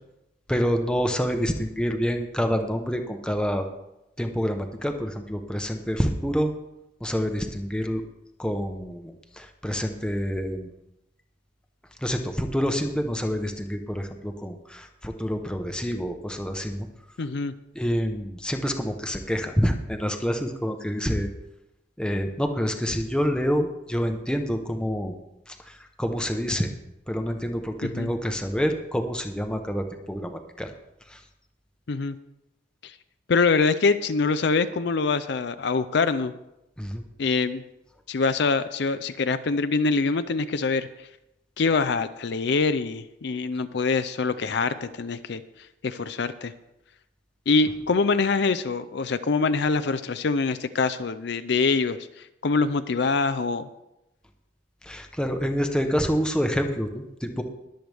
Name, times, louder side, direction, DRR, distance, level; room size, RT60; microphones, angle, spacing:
voice 1, 0.5-3.6 4.2-6.5 7.0-8.0 8.4-10.7 12.0-16.9 17.7-21.3 22.0-25.1 25.5-26.7 27.1-30.7 31.1-31.2 36.8-37.0 54.8-57.4, equal, 5° left, 4 dB, 1.0 m, -27 dB
voice 2, 17.2-17.5 27.8-28.1 31.9-32.2 32.8-32.9 33.3-36.3 37.2-37.6 38.1-40.9 41.6-45.4 45.8-46.5 47.5-53.7, left 4 dB, 60° left, 12 dB, 0.5 m, -24 dB
21.5 x 7.8 x 3.5 m, 0.90 s
head